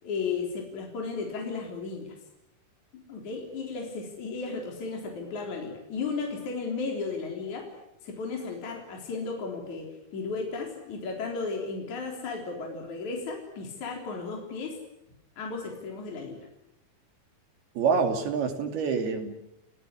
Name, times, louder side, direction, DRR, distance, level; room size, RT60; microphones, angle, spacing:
voice 1, 0.0-2.2 3.1-7.7 8.0-9.9 10.1-14.8 15.4-16.4, left 4 dB, 50° left, 1 dB, 5.0 m, -34 dB
voice 2, 17.8-19.4, right 5 dB, 80° right, 6 dB, 4.5 m, -26 dB
29.5 x 17.0 x 9.7 m, 0.87 s
omnidirectional pair, 4.4 m